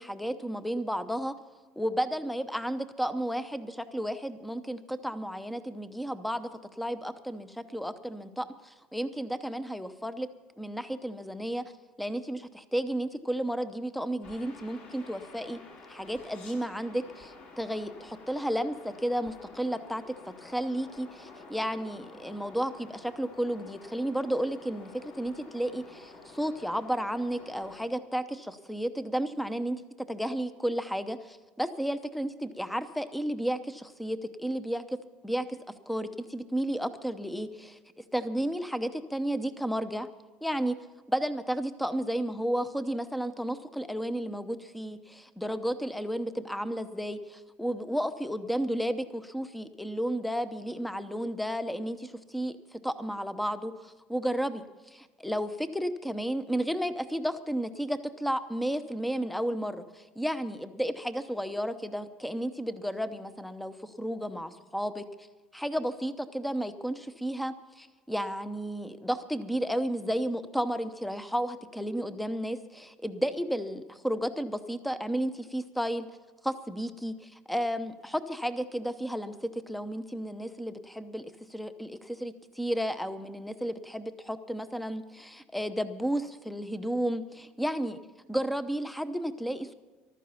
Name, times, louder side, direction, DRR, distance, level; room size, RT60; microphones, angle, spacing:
voice 1, 0.0-1.3 1.8-6.5 6.8-10.3 10.6-11.6 12.0-15.6 15.9-20.0 20.4-29.8 30.1-35.0 35.2-35.6 35.9-37.8 38.1-40.1 40.4-40.8 41.1-54.6 54.9-65.1 65.5-76.1 76.4-88.0 88.3-89.7, equal, ahead, 12 dB, 0.8 m, -32 dB
sound 1, 14.2-27.8, left 3 dB, 55° left, 3.6 m, -50 dB
14.5 x 12.5 x 5.7 m, 1.3 s
cardioid pair, 145°, 3 cm